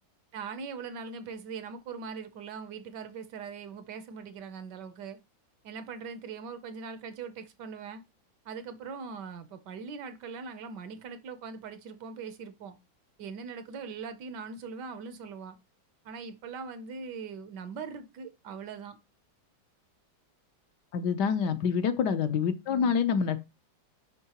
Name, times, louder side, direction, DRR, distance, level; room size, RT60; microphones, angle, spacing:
voice 1, 0.3-5.2 5.6-8.0 8.4-12.8 13.2-15.6 16.0-19.0 22.7-22.9, right 5 dB, 70° right, 1.3 m, -41 dB
voice 2, 20.9-23.4, left 6 dB, 70° left, 1.2 m, -26 dB
10.5 x 3.6 x 2.8 m
omnidirectional pair, 2.1 m